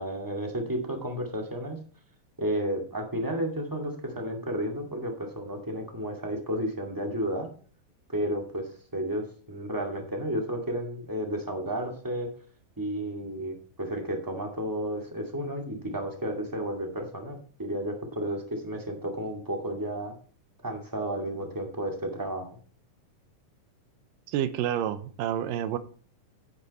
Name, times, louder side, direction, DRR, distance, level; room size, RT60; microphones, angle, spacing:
voice 1, 0.0-1.8 2.4-7.5 8.1-12.3 12.8-20.1 20.6-22.5, right 1 dB, 10° right, 2 dB, 1.4 m, -32 dB
voice 2, 24.3-25.8, right 10 dB, 85° right, 12 dB, 2.4 m, -29 dB
9.7 x 9.3 x 4.2 m, 0.43 s
omnidirectional pair, 3.8 m